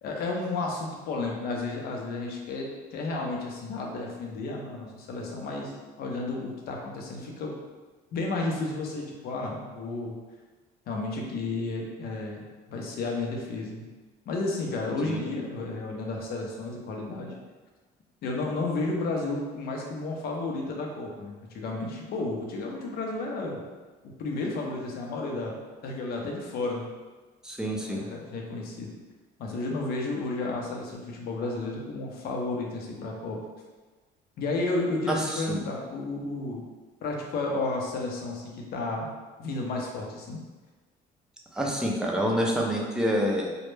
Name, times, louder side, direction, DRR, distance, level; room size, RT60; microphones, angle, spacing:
voice 1, 0.0-7.5 8.1-10.1 10.9-12.4 12.7-13.8 14.3-17.3 18.2-23.6 24.2-26.9 27.6-28.9 29.4-33.4 34.4-36.7 37.0-39.1 39.4-40.4, left 2 dB, 65° left, 0 dB, 0.5 m, -32 dB
voice 2, 27.4-28.0 35.1-35.6 41.5-43.5, equal, 5° right, -1 dB, 0.4 m, -27 dB
2.1 x 2.1 x 3.1 m, 1.3 s
cardioid pair, 110°, 17 cm